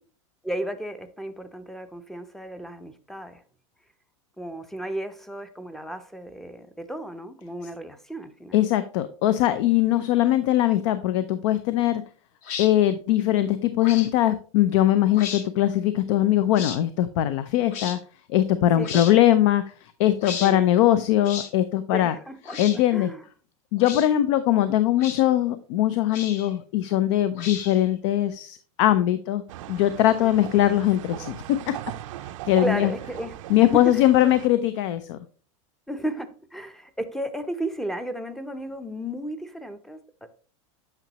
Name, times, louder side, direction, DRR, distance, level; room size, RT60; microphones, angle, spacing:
voice 1, 0.4-3.4 4.4-8.5 18.8-19.2 20.4-20.7 21.9-23.2 30.2-30.4 32.6-33.3 33.7-34.4 35.9-40.3, right 1 dB, ahead, 10 dB, 0.6 m, -34 dB
voice 2, 8.5-12.0 12.6-18.0 18.3-22.1 22.6-23.1 23.7-29.4 29.7-31.8 32.4-32.9 33.5-35.2, left 13 dB, 65° left, 13 dB, 0.6 m, -21 dB
sound 1, 12.4-12.7 13.8-14.1 15.1-15.4 16.5-16.8 17.7-18.0 18.8-19.2 20.2-20.5 21.2-21.5 22.4-22.8 23.8-24.1 25.0-25.2 26.1-26.5 27.4-27.9, left 7 dB, 45° left, 1.0 m, -34 dB
sound 2, 29.5-34.5, right 13 dB, 75° right, 0.5 m, -39 dB
8.9 x 5.9 x 2.9 m, 0.40 s
supercardioid pair, 135°, 17 cm